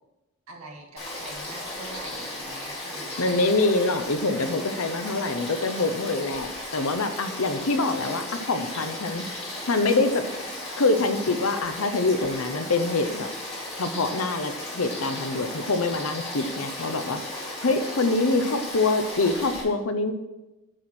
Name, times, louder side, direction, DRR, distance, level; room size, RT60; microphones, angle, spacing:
voice 1, 0.5-3.4, right 2 dB, 90° right, 0 dB, 1.8 m, -44 dB
Frog / Stream, 1.0-19.6, left 1 dB, 30° left, 2.4 m, -35 dB
voice 2, 3.2-9.2 9.7-10.3 10.8-13.3 13.8-17.2 17.6-20.1, left 3 dB, 75° left, 8 dB, 0.8 m, -25 dB
9.1 x 4.5 x 6.2 m, 1.0 s
head